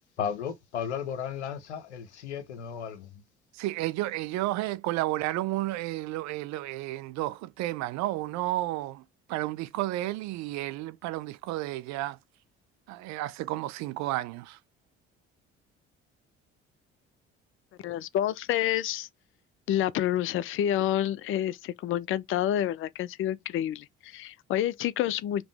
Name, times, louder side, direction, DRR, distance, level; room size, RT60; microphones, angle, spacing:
voice 1, 0.2-3.2, left 8 dB, 85° left, 0.7 m, -34 dB
voice 2, 3.5-12.2 12.9-14.6, right 16 dB, 55° right, 0.5 m, -32 dB
voice 3, 17.8-19.1 19.7-25.4, left 12 dB, 40° left, 0.4 m, -28 dB
5.1 x 2.9 x 3.4 m
figure-of-eight pair, 50°, 33 cm